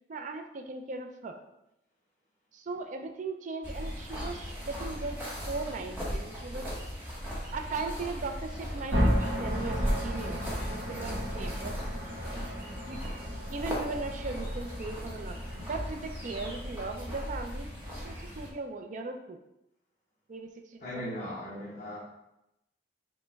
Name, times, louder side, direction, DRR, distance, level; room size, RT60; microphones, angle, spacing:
voice 1, 0.1-1.4 2.5-6.7 7.5-11.8 12.9-13.0 13.5-17.7 18.0-19.4 20.3-21.1, right 3 dB, 45° right, 5 dB, 0.4 m, -38 dB
sound 1, 3.6-18.5, equal, 10° right, 0.9 m, -38 dB
sound 2, 8.9-16.9, equal, 80° right, 1.1 m, -33 dB
voice 2, 20.8-22.0, left 1 dB, 40° left, -10 dB, 0.9 m, -38 dB
5.0 x 2.1 x 3.4 m, 0.87 s
head